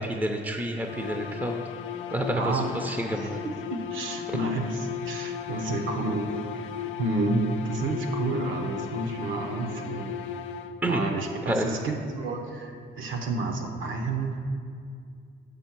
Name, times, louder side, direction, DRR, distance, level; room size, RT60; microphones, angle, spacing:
voice 1, 0.0-1.6 2.1-3.4 10.8-11.0 11.5-11.7, right 1 dB, 10° right, 4 dB, 0.5 m, -29 dB
sound 1, 0.8-11.1, left 8 dB, 85° left, 0.5 m, -36 dB
voice 2, 2.3-6.3 7.0-10.1 10.8-14.4, right 2 dB, 80° right, 4 dB, 1.0 m, -30 dB
6.4 x 5.4 x 6.0 m, 2.4 s
cardioid pair, 90°, 20 cm